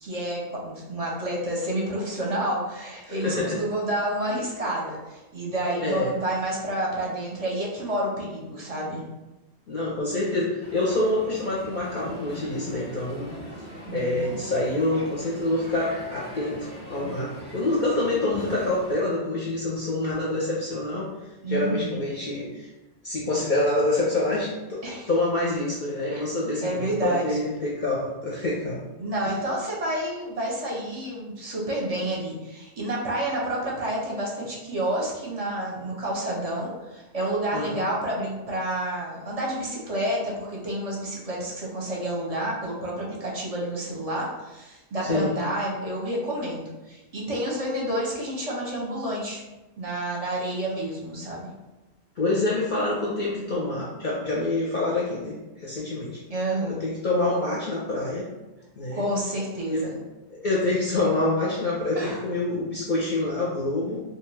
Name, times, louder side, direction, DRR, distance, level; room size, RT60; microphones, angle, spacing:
voice 1, 0.0-9.0 13.9-14.3 21.4-22.0 24.8-25.1 26.1-26.2 26.6-27.4 29.0-49.4 49.8-51.5 56.3-56.8 58.9-59.9 62.0-62.2, right 1 dB, 40° right, -3 dB, 0.6 m, -29 dB
voice 2, 3.0-3.6 5.8-6.1 9.7-13.4 13.9-21.1 21.5-22.7 23.0-28.9 29.3-29.4 37.5-37.9 45.0-45.4 52.2-56.2 56.7-58.3 58.8-59.1 59.7-59.9 60.3-64.0, left 2 dB, 55° left, -5 dB, 0.6 m, -26 dB
Crowd, 10.6-18.9, left 1 dB, 10° left, 0.6 m, -41 dB
2.5 x 2.3 x 3.2 m, 1.1 s
omnidirectional pair, 1.2 m